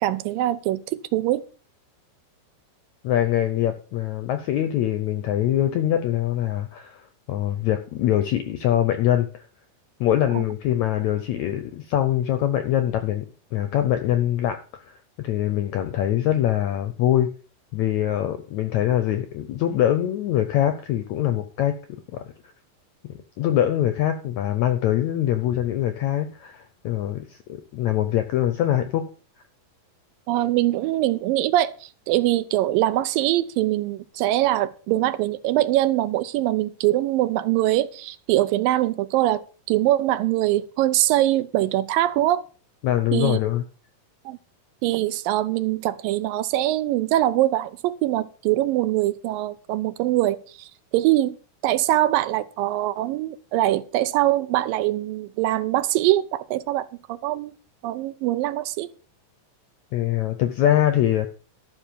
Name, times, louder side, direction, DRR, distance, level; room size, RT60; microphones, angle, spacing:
voice 1, 0.0-1.4 10.4-10.5 30.3-39.4 39.7-42.4 43.1-43.4 44.3-44.4 44.8-51.4 51.6-57.5 57.8-58.9, right 15 dB, 80° right, 2.3 m, -23 dB
voice 2, 3.0-9.5 10.0-13.3 13.5-17.3 17.7-21.8 22.1-22.2 23.1-29.1 42.8-43.6 59.9-61.3, left 11 dB, 80° left, 1.7 m, -23 dB
12.5 x 5.8 x 6.8 m
omnidirectional pair, 4.2 m